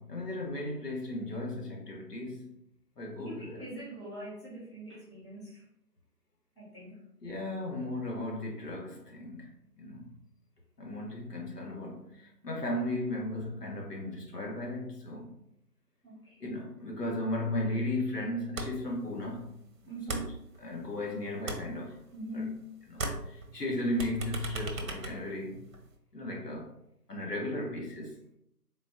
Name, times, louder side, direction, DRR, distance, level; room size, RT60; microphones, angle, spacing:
voice 1, 0.0-2.5 3.0-3.6 7.2-9.5 9.8-10.1 10.8-15.3 16.4-19.5 20.1-20.2 20.6-22.0 22.3-22.4 22.9-25.6 26.1-26.7 27.1-28.2, left 1 dB, 70° left, 1.4 m, -35 dB
voice 2, 3.2-5.6 6.5-7.0 16.0-16.5 19.9-20.4 22.1-22.7, equal, 15° left, 1.2 m, -42 dB
sound 1, 18.6-19.0 19.2-21.0 21.3-22.6 22.9-25.9, right 2 dB, 55° right, 0.8 m, -38 dB
4.0 x 2.5 x 3.7 m
figure-of-eight pair, 160°, 49 cm